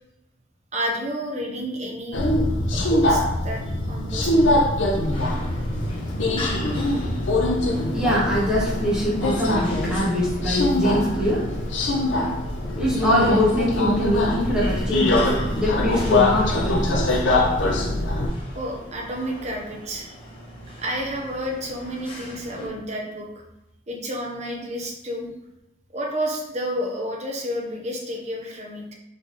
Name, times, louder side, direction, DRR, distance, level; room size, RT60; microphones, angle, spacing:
voice 1, 0.7-2.3 2.7-4.7 18.5-20.1 20.8-23.3 23.9-25.3 25.9-28.9, equal, 35° right, 0 dB, 0.8 m, -30 dB
Subway metro underground, 2.1-18.3, left 1 dB, 70° left, 0.7 m, -23 dB
sound 1, 5.1-22.7, left 1 dB, 25° left, 1.0 m, -40 dB
voice 2, 7.9-11.5 12.8-17.2 17.6-17.8, equal, 5° right, -8 dB, 1.0 m, -23 dB
3.9 x 3.4 x 4.0 m, 0.94 s
head